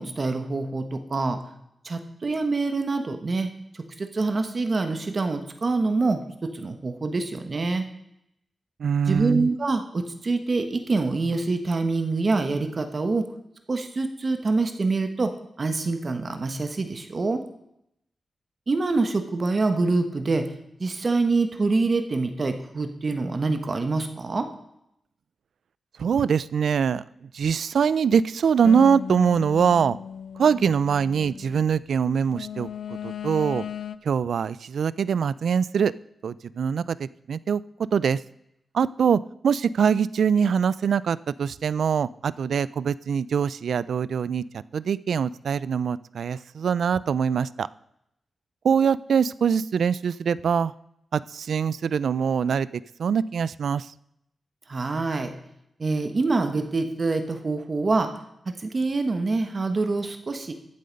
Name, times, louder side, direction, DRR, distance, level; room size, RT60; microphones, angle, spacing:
voice 1, 0.0-1.4 1.8-7.8 9.1-13.3 13.7-17.4 18.7-20.5 20.8-24.5 54.7-55.3 55.8-58.1 58.5-60.5, right 3 dB, 35° right, 7 dB, 1.1 m, -25 dB
voice 2, 8.8-9.5 26.0-27.0 27.3-30.0 30.4-32.7 33.0-33.7 34.0-35.9 36.2-37.6 37.9-38.2 38.7-47.7 48.6-50.7 51.1-52.7 53.0-53.9, right 7 dB, 80° right, 19 dB, 0.4 m, -23 dB
sound 1, 28.6-31.6 32.3-34.0, left 8 dB, 85° left, 0.4 m, -36 dB
14.0 x 7.7 x 5.2 m, 0.78 s
wide cardioid pair, 145°, 0 cm